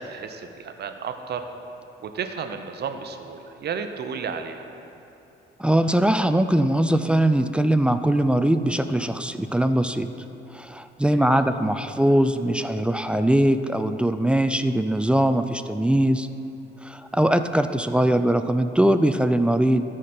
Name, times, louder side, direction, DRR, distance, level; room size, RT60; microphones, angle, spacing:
voice 1, 0.0-1.4 2.0-4.7 11.1-11.4 17.1-17.3, right 6 dB, 55° right, 7 dB, 0.8 m, -33 dB
voice 2, 5.6-10.1 10.5-16.3 16.8-19.8, right 1 dB, 5° right, 9 dB, 0.3 m, -21 dB
14.5 x 4.9 x 4.3 m, 2.9 s
cardioid pair, 90°, 20 cm